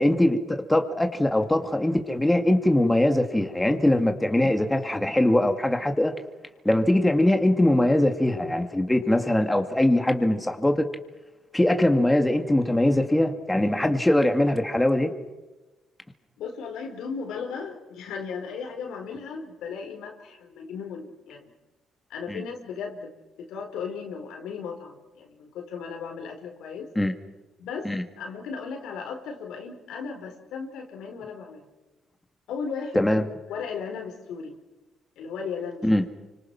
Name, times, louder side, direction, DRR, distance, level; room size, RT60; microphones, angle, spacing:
voice 1, 0.0-6.1 6.6-10.9 11.5-15.1 22.3-22.4 27.0-27.1 27.8-28.0 32.9-33.2 35.8-36.1, left 1 dB, 10° left, 5 dB, 2.3 m, -22 dB
voice 2, 16.4-21.5 22.1-26.9 27.6-27.9 28.2-31.7 32.5-33.1 33.5-34.6 35.2-35.9, left 5 dB, 85° left, 4 dB, 4.8 m, -36 dB
29.5 x 25.5 x 6.1 m, 1.1 s
cardioid pair, 90°, 0 cm